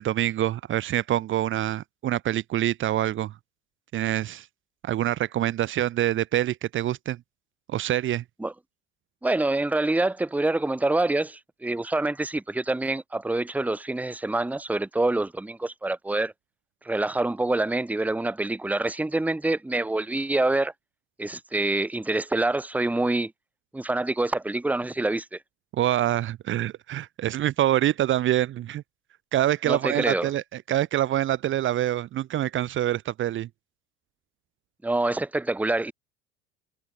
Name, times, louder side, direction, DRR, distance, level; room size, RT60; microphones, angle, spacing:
voice 1, 0.0-3.3 3.9-4.5 4.8-7.2 7.7-8.2 25.7-28.8 29.3-33.5, right 12 dB, 40° right, 1.1 m, -25 dB
voice 2, 9.2-16.3 16.8-20.7 21.2-23.3 23.7-25.4 29.6-30.3 34.8-35.9, right 2 dB, 5° right, 1.2 m, -26 dB
figure-of-eight pair, 70°, 32 cm